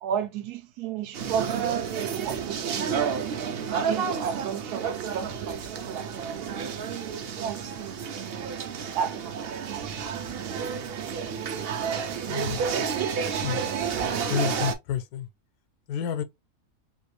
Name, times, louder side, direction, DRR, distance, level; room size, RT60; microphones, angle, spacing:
voice 1, 0.0-3.0 3.9-6.7 7.3-7.6 8.9-10.1 10.4-10.5 12.1-12.8, right 8 dB, 90° right, 1.2 m, -34 dB
sound 1, 1.1-14.7, right 7 dB, 65° right, 0.6 m, -30 dB
voice 2, 12.2-12.6 13.4-13.6 14.3-15.3 15.9-16.2, left 8 dB, 85° left, 1.1 m, -29 dB
3.0 x 2.4 x 3.1 m
omnidirectional pair, 1.6 m